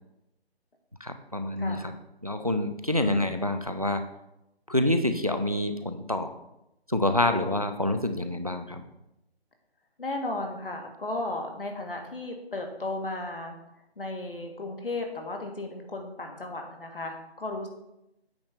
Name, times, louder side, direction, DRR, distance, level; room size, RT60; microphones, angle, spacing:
voice 1, 1.0-1.9 2.2-4.1 4.7-6.3 6.9-8.8, left 1 dB, 35° right, 9 dB, 0.4 m, -27 dB
voice 2, 1.6-1.9 3.0-3.4 10.0-13.6 14.0-17.7, left 2 dB, 60° left, 3 dB, 1.4 m, -35 dB
8.6 x 3.2 x 5.8 m, 0.89 s
figure-of-eight pair, 175°, 32 cm